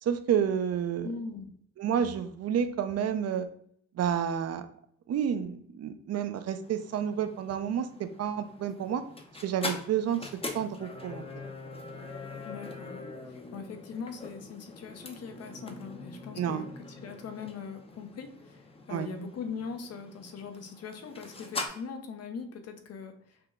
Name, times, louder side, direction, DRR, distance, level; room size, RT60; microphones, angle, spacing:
voice 1, 0.0-1.1 1.8-3.5 3.9-4.7 5.1-9.0 9.4-11.2 16.4-16.6 18.9-19.1, right 8 dB, 55° right, 10 dB, 0.6 m, -30 dB
voice 2, 1.0-1.5 12.4-23.4, left 5 dB, 55° left, 7 dB, 0.8 m, -41 dB
sound 1, 6.6-21.7, left 3 dB, 20° left, 0.7 m, -43 dB
5.7 x 2.2 x 3.6 m, 0.65 s
cardioid pair, 90°, 30 cm